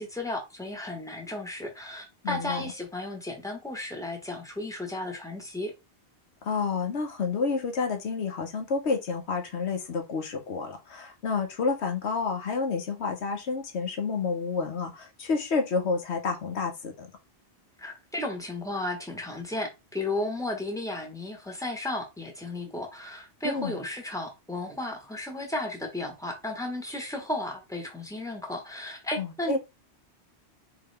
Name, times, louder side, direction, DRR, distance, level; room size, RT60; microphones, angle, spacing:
voice 1, 0.0-5.7 17.8-29.6, left 1 dB, 5° left, 1.1 m, -34 dB
voice 2, 2.2-2.7 6.4-17.1 23.4-23.8 29.2-29.6, left 4 dB, 75° left, 1.3 m, -29 dB
4.0 x 3.3 x 3.3 m
omnidirectional pair, 1.1 m